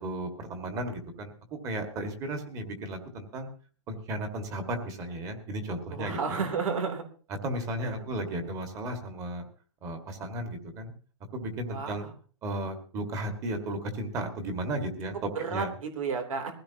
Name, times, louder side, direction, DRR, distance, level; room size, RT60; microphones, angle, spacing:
voice 1, 0.0-3.5 3.9-6.4 7.4-9.4 9.8-10.9 11.3-12.0 12.4-15.7, right 1 dB, 20° right, 5 dB, 1.9 m, -34 dB
voice 2, 5.9-7.0 7.8-8.1 11.7-12.1 15.3-16.5, right 5 dB, 85° right, 5 dB, 3.2 m, -32 dB
21.5 x 15.5 x 2.9 m, 0.40 s
hypercardioid pair, 170°, 17 cm